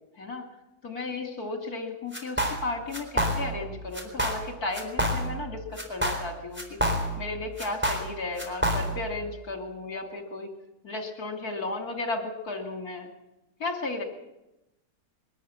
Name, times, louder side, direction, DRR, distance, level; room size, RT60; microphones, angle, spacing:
voice 1, 0.8-6.8 7.2-10.5 10.8-13.1 13.6-14.0, left 3 dB, 65° left, 4 dB, 3.4 m, -34 dB
sound 1, 2.1-2.7 2.9-3.7 3.9-4.5 4.7-5.5 5.8-7.3 7.6-9.1, equal, 5° right, 4.0 m, -28 dB
23.0 x 13.5 x 9.9 m, 0.92 s
omnidirectional pair, 1.7 m